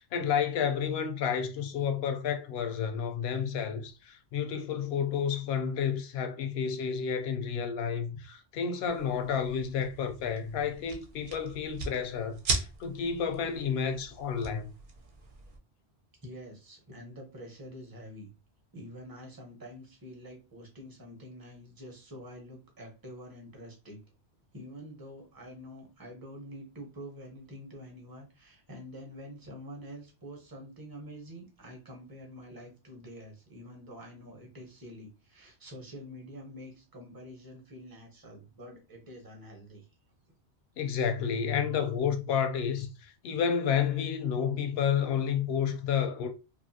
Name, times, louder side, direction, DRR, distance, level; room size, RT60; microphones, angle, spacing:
voice 1, 0.0-14.7 40.8-46.3, left 7 dB, 65° left, 0.7 m, -30 dB
sound 1, 8.9-15.6, right 3 dB, 55° right, 0.8 m, -39 dB
voice 2, 16.2-18.3 18.7-24.0 24.5-39.9, equal, 20° right, 0.8 m, -47 dB
2.7 x 2.4 x 2.6 m
omnidirectional pair, 1.2 m